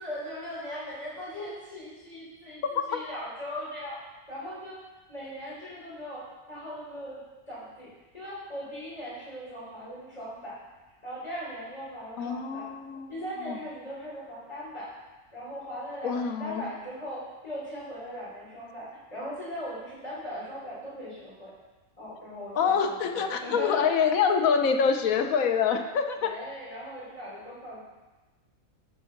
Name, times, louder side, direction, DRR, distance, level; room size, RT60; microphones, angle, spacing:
voice 1, 0.0-4.0 4.3-4.8 5.1-7.2 7.5-7.9 8.1-10.6 11.0-12.7 13.1-14.9 15.3-21.5 22.0-24.0 26.2-27.8, equal, 25° left, -8 dB, 3.4 m, -39 dB
voice 2, 12.2-13.1 13.4-13.6 16.0-16.7 22.6-26.3, left 6 dB, 90° left, 6 dB, 1.2 m, -26 dB
8.4 x 5.3 x 5.8 m, 1.2 s
omnidirectional pair, 1.4 m